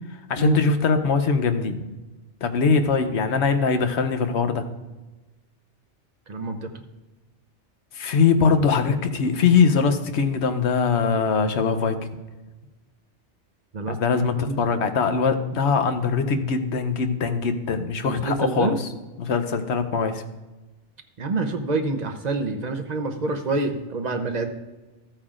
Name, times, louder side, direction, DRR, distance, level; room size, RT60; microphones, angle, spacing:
voice 1, 0.3-1.8 2.4-4.7 7.9-12.0 13.9-18.9 19.2-20.2, left 5 dB, 70° left, 8 dB, 1.0 m, -22 dB
voice 2, 6.3-6.7 13.7-14.6 18.0-18.8 21.2-24.5, right 3 dB, 40° right, 5 dB, 0.8 m, -27 dB
13.5 x 8.8 x 2.5 m, 1.1 s
omnidirectional pair, 1.2 m